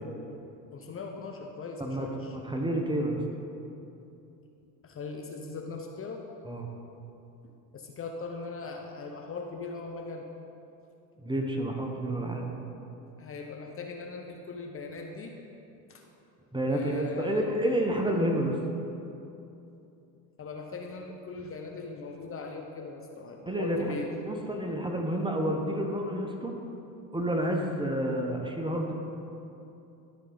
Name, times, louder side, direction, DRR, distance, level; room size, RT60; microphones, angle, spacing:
voice 1, 0.7-2.4 4.8-6.2 7.7-10.3 13.2-15.4 15.9-16.0 16.7-17.5 20.4-24.1, left 4 dB, 30° left, 2 dB, 0.8 m, -40 dB
voice 2, 2.3-3.2 6.5-6.7 11.2-12.4 16.5-18.6 23.5-23.9 24.2-26.5 27.1-28.9, right 1 dB, 10° right, 2 dB, 0.9 m, -29 dB
12.5 x 4.9 x 3.9 m, 2.8 s
hypercardioid pair, 85°, 47 cm